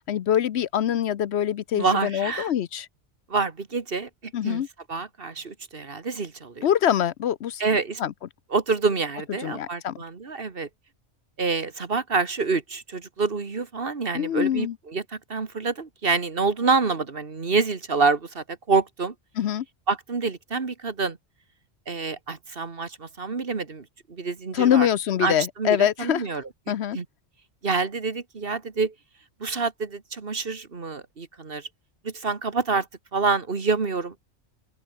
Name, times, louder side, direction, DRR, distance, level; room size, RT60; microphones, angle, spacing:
voice 1, 0.0-2.9 4.3-4.7 6.6-7.6 8.0-8.1 9.4-10.0 14.1-14.7 19.4-19.6 24.5-26.2 26.7-27.0, left 10 dB, 65° left, 0.9 m, -24 dB
voice 2, 1.8-2.5 3.3-4.6 4.9-6.7 7.6-8.0 8.5-10.7 11.4-19.1 19.9-21.2 21.9-24.9 25.2-26.4 26.9-27.1 27.6-28.9 29.4-31.7 32.0-32.9 33.1-34.1, right 4 dB, 50° right, 1.9 m, -27 dB
omnidirectional pair, 1.2 m